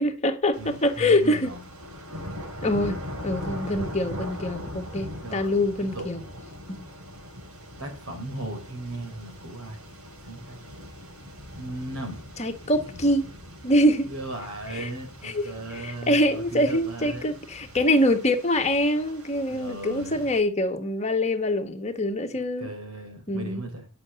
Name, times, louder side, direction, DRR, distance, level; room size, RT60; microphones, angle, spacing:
voice 1, 0.0-1.5 2.6-6.2 6.7-6.9 12.4-13.3 13.6-14.1 14.7-14.9 15.2-15.4 15.7-22.7 23.3-23.6, left 1 dB, 30° left, 1.4 m, -24 dB
sound 1, 0.5-20.4, left 1 dB, 75° right, 3.8 m, -41 dB
voice 2, 0.6-1.7 3.6-3.9 5.2-6.1 7.8-9.8 10.3-10.6 11.6-12.2 14.0-17.4 19.5-20.3 22.6-23.9, right 2 dB, 90° right, 4.2 m, -37 dB
10.0 x 6.2 x 6.9 m
head